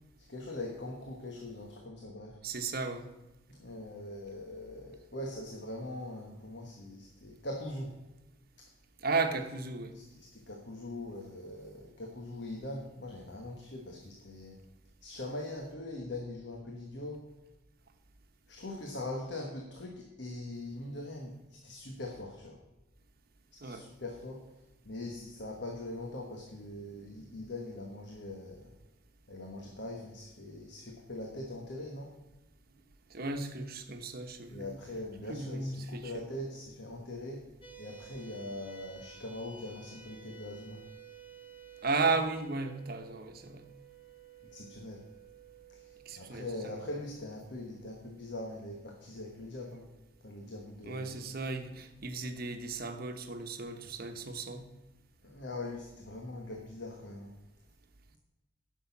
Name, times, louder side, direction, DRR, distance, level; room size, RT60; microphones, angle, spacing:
voice 1, 0.2-2.4 3.5-8.0 9.9-14.6 15.0-17.3 18.5-22.6 23.6-28.7 29.3-32.2 34.5-37.5 37.8-40.9 44.5-45.0 45.7-49.9 50.2-51.3 55.2-57.4, left 1 dB, 60° left, 1 dB, 1.3 m, -42 dB
voice 2, 2.4-3.1 9.0-9.9 23.6-23.8 27.2-27.3 33.1-34.8 35.3-36.5 41.8-43.6 46.0-46.9 50.8-54.7, right 3 dB, 50° right, 7 dB, 1.1 m, -35 dB
sound 1, 37.6-50.3, right 7 dB, 25° left, 1.6 m, -55 dB
10.0 x 6.4 x 7.1 m, 1.0 s
head